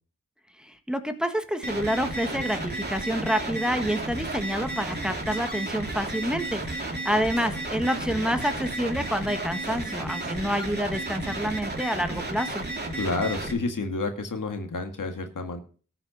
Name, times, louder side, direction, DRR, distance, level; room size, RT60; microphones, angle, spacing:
voice 1, 0.6-12.6, equal, 5° right, 7 dB, 1.5 m, -28 dB
sound 1, 1.6-13.5, right 2 dB, 30° right, 2.7 m, -33 dB
sound 2, 1.8-3.5 3.8-10.8, right 3 dB, 60° right, 2.4 m, -50 dB
voice 2, 13.0-15.6, left 3 dB, 80° left, 6 dB, 1.8 m, -29 dB
13.5 x 5.9 x 6.6 m, 0.40 s
wide cardioid pair, 60°, 31 cm